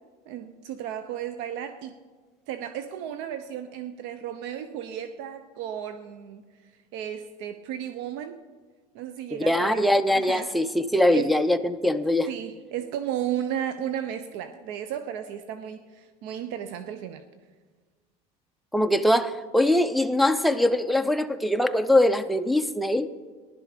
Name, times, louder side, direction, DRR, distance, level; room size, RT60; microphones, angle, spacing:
voice 1, 0.3-1.9 2.5-6.4 6.9-8.4 8.9-9.8 10.1-10.6 11.1-11.3 12.3-17.2, right 10 dB, 70° right, 9 dB, 0.7 m, -34 dB
voice 2, 9.4-12.3 18.7-23.1, left 1 dB, ahead, 7 dB, 0.6 m, -22 dB
15.5 x 11.5 x 5.1 m, 1.4 s
supercardioid pair, 110°, 19 cm